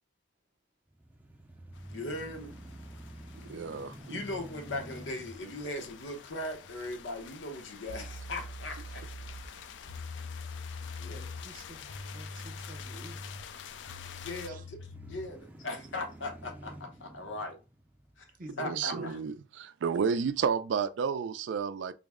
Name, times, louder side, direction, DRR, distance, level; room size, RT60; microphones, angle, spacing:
sound 1, 0.9-9.0 9.5-9.6 14.1-18.6, right 1 dB, 10° right, 0.4 m, -50 dB
sound 2, 1.7-14.5, left 8 dB, 75° left, 0.3 m, -49 dB
voice 1, 1.9-2.5 4.1-9.0 11.0-11.3 14.2-14.8 15.1-17.6 18.2-18.3 18.6-19.2, left 2 dB, 90° left, 0.8 m, -39 dB
voice 2, 3.5-4.2 18.6-19.4 19.6-21.9, right 6 dB, 80° right, 0.3 m, -31 dB
sound 3, 7.4-7.5 7.9-15.4, left 2 dB, 50° left, 0.7 m, -44 dB
voice 3, 11.1-13.6 14.5-14.7 18.4-19.3, right 1 dB, 50° right, 0.7 m, -48 dB
3.9 x 2.1 x 3.5 m
head